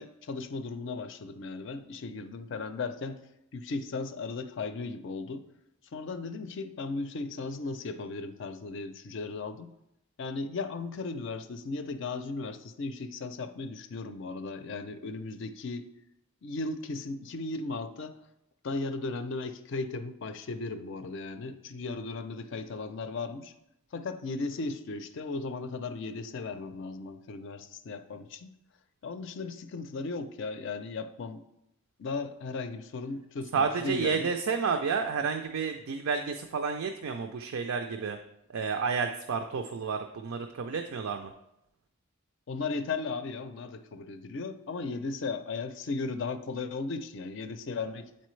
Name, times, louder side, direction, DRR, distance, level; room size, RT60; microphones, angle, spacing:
voice 1, 0.0-3.2 3.5-5.4 5.9-9.7 10.2-15.9 16.4-18.2 18.6-23.5 23.9-28.5 29.0-31.4 32.0-34.3 42.5-48.1, left 3 dB, 60° left, 10 dB, 0.4 m, -36 dB
voice 2, 33.5-38.2 38.5-41.3, right 5 dB, 85° right, 5 dB, 0.4 m, -30 dB
8.2 x 4.3 x 3.1 m, 0.83 s
head